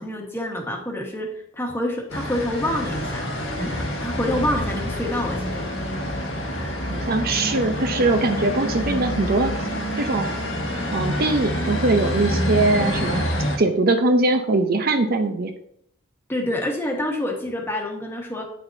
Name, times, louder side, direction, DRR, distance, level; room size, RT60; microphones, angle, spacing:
voice 1, 0.0-3.3 3.5-5.6 16.3-18.4, left 1 dB, 10° left, 1 dB, 1.3 m, -27 dB
sound 1, 2.1-13.6, equal, 75° left, 1.7 m, -27 dB
voice 2, 6.9-9.5 10.0-10.3 10.9-13.3 13.6-15.5, right 2 dB, 50° right, 7 dB, 0.6 m, -21 dB
8.8 x 6.4 x 2.7 m, 0.70 s
head